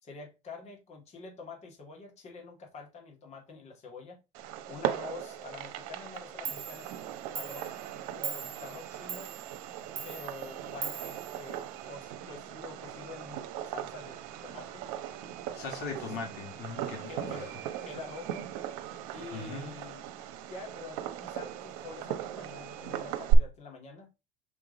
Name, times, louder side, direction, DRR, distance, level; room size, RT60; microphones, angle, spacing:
voice 1, 0.0-4.2 4.7-6.9 7.3-7.7 8.1-9.3 10.0-14.9 15.9-16.2 17.1-17.6 17.8-18.5 19.1-20.1 20.5-24.1, left 3 dB, 40° left, 2.3 m, -46 dB
Fireworks, 4.3-23.3, right 12 dB, 80° right, 1.0 m, -37 dB
Clock, 6.1-6.2 6.5-12.1, right 9 dB, 50° right, 0.7 m, -42 dB
voice 2, 15.5-17.4 19.3-19.7, left 4 dB, 65° left, 2.1 m, -39 dB
6.6 x 3.6 x 4.0 m
supercardioid pair, 115°, 18 cm